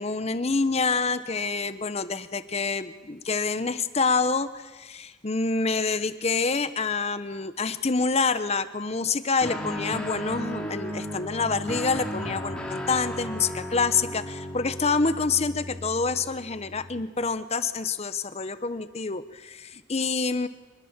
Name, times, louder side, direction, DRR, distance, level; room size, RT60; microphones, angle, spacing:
voice 1, 0.0-20.5, left 4 dB, 35° left, 12 dB, 0.9 m, -27 dB
Guitar, 9.4-17.1, equal, 5° left, 3.1 m, -35 dB
26.5 x 21.0 x 7.4 m, 1.2 s
head